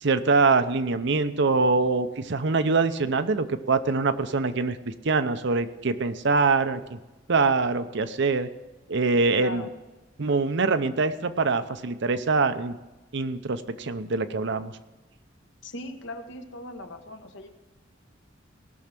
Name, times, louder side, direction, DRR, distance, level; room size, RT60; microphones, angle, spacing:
voice 1, 0.0-7.0 7.3-8.5 8.9-9.7 10.2-12.8 13.1-14.7, right 4 dB, 65° right, 10 dB, 0.7 m, -24 dB
voice 2, 9.4-9.7 15.6-17.5, left 1 dB, 70° left, 5 dB, 1.3 m, -38 dB
18.5 x 6.4 x 6.0 m, 1.1 s
head